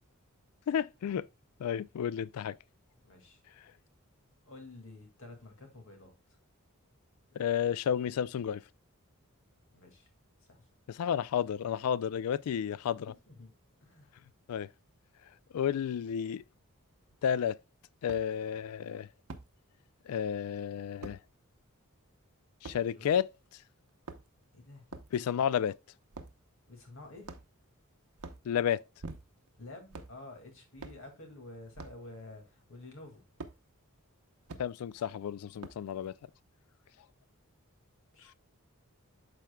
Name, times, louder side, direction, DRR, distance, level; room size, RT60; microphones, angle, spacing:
voice 1, 0.7-1.3 1.6-2.6 7.4-8.6 10.9-13.1 14.5-14.7 15.5-16.4 17.2-17.6 18.0-19.1 20.1-21.2 22.6-23.3 25.1-25.8 28.4-28.8 34.6-36.1, left 8 dB, 80° left, 0.3 m, -31 dB
voice 2, 3.0-3.4 4.4-6.4 9.7-10.1 10.5-10.7 13.3-13.5 13.8-14.1 22.8-23.2 24.5-24.9 25.2-25.4 26.7-27.3 29.6-33.2 38.1-38.3, left 2 dB, 60° left, 2.1 m, -50 dB
sound 1, 17.1-17.2 18.1-18.3 19.3-19.5 21.0-21.2 22.6-22.8 23.9-24.4 24.9-25.1 26.1-26.4 27.2-27.7 28.1-28.5 29.0-29.5 29.9-30.2 30.8-31.0 31.7-32.0 33.4-33.6 34.5-34.7 35.6-35.9, right 3 dB, 85° right, 0.8 m, -45 dB
11.5 x 4.5 x 2.2 m
head